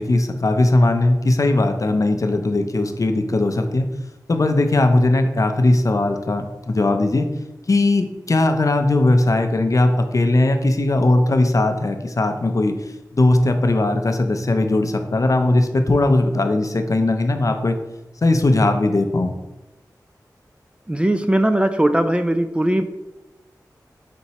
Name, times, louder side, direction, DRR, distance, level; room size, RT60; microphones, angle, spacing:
voice 1, 0.0-3.9 4.3-7.3 7.7-12.7 13.1-17.8 18.2-19.3, left 2 dB, 50° left, 6 dB, 0.5 m, -18 dB
voice 2, 20.9-22.8, right 1 dB, 15° right, 9 dB, 0.3 m, -19 dB
4.4 x 4.1 x 2.9 m, 1.0 s
cardioid pair, 45°, 7 cm